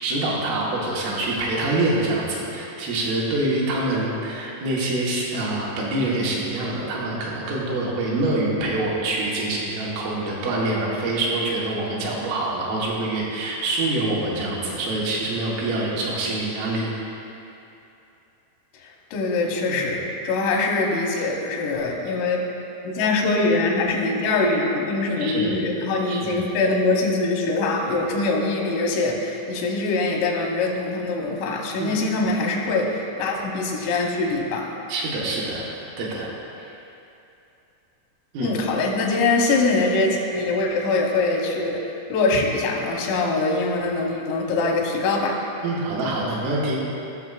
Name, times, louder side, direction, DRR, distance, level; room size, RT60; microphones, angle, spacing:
voice 1, 0.0-16.9 19.7-19.8 25.2-25.5 26.1-26.3 31.8-31.9 34.9-35.7 36.0-36.3 36.6-36.7 38.3-38.5 45.6-46.8, right 2 dB, 85° right, -5 dB, 3.9 m, -25 dB
voice 2, 18.8-22.5 22.9-34.7 38.4-45.4, left 3 dB, 90° left, -1 dB, 3.7 m, -23 dB
17.5 x 6.6 x 2.4 m, 2.8 s
omnidirectional pair, 5.6 m